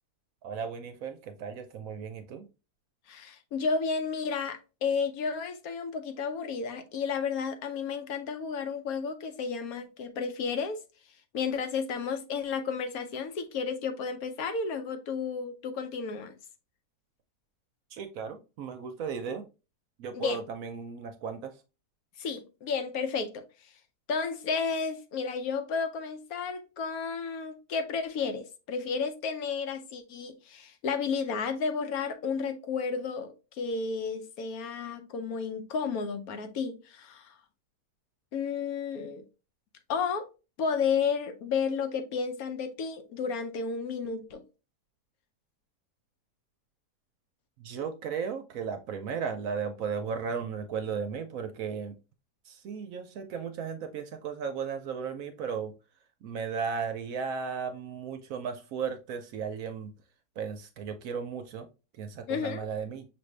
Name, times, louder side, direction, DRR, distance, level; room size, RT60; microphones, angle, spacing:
voice 1, 0.4-2.5 17.9-19.4 20.0-21.5 47.6-52.0 52.4-55.7 56.2-59.9 60.4-61.7 61.9-63.0, right 6 dB, 70° right, 0.9 m, -35 dB
voice 2, 3.1-10.8 11.3-16.3 20.1-20.4 22.2-23.4 24.1-37.3 38.3-39.2 39.9-40.2 40.6-44.4 62.3-62.6, left 5 dB, 70° left, 1.0 m, -32 dB
6.0 x 2.6 x 3.2 m
omnidirectional pair, 1.7 m